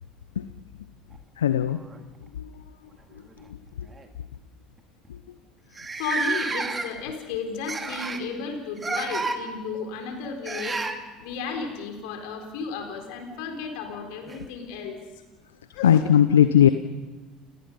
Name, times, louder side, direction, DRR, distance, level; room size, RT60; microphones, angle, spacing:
sound 1, 1.1-2.3 3.3-3.5 3.9-4.1 4.8-4.9 5.0-5.1 5.7-7.1 7.7-8.3 8.8-9.4 10.4-11.0 13.1-13.2 14.3-14.4, right 3 dB, 25° right, 2.2 m, -30 dB
voice 1, 1.4-1.8 2.4-2.5 15.8-16.7, left 10 dB, 85° left, 12 dB, 0.7 m, -18 dB
voice 2, 5.7-10.8 11.2-15.0 15.7-16.0, left 5 dB, 70° left, 4 dB, 4.0 m, -34 dB
30.0 x 18.5 x 5.4 m, 1.2 s
hypercardioid pair, 65°, 0 cm